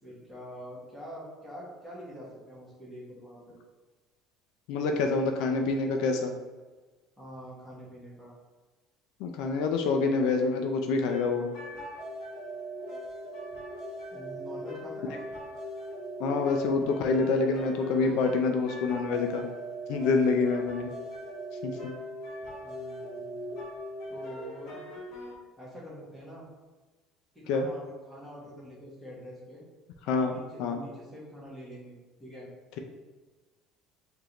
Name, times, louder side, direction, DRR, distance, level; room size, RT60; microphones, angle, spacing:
voice 1, 0.0-3.6 7.2-8.3 14.1-15.2 22.6-23.6 24.1-24.8 25.6-26.4 27.3-29.6 30.0-32.5, equal, ahead, -7 dB, 1.1 m, -45 dB
voice 2, 4.7-6.3 9.2-11.5 16.2-19.5 19.9-20.9 21.6-21.9 27.5-27.7 30.1-30.3 30.6-30.8, left 4 dB, 65° left, 4 dB, 0.4 m, -26 dB
sound 1, 11.1-25.3, equal, 50° left, 0.9 m, -40 dB
4.9 x 2.6 x 2.9 m, 1.3 s
cardioid pair, 170°, 0 cm